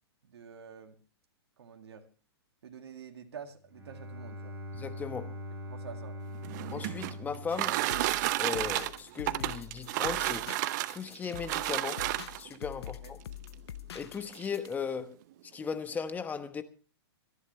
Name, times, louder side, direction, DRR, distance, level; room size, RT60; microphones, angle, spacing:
voice 1, 0.2-1.0 1.6-2.1 2.6-4.6 5.6-6.2 13.0-13.1, right 7 dB, 75° right, 2.2 m, -47 dB
Bowed string instrument, 3.7-8.6, left 1 dB, 15° right, 7.2 m, -43 dB
voice 2, 4.7-5.4 6.7-7.8 8.4-10.5 10.9-12.0 12.4-13.2 13.9-15.2 15.5-16.6, left 6 dB, 10° left, 1.1 m, -37 dB
sound 1, 6.3-12.6 13.4-13.5 13.9-14.0 14.3-14.7, right 16 dB, 45° right, 0.7 m, -32 dB
sound 2, 7.9-14.7, left 11 dB, 75° left, 0.8 m, -45 dB
25.5 x 11.0 x 3.2 m
hypercardioid pair, 135°, 14 cm